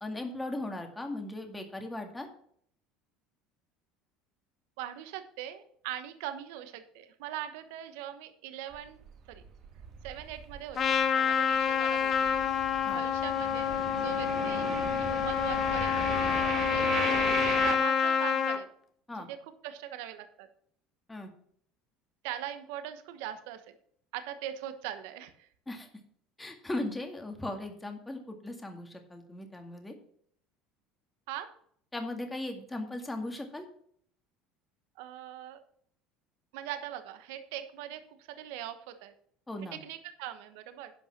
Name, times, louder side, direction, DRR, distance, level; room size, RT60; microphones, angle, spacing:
voice 1, 0.0-2.3 12.8-13.0 19.1-19.3 21.1-21.3 25.7-25.9 26.4-29.9 31.9-33.7 39.5-39.8, left 1 dB, 10° left, 4 dB, 2.0 m, -38 dB
voice 2, 4.8-9.0 9.3-9.4 10.0-12.5 12.8-13.7 14.0-14.7 15.0-16.3 16.6-18.7 19.1-20.5 22.2-23.7 24.1-25.5 31.3-31.5 35.0-35.6 36.5-39.1 39.7-40.9, right 11 dB, 80° right, 9 dB, 1.1 m, -41 dB
sound 1, 8.7-11.0 11.3-17.8, right 6 dB, 50° right, 1.7 m, -37 dB
Trumpet, 10.8-18.6, left 7 dB, 40° left, 1.1 m, -28 dB
11.0 x 5.6 x 5.9 m, 0.63 s
supercardioid pair, 115°, 0 cm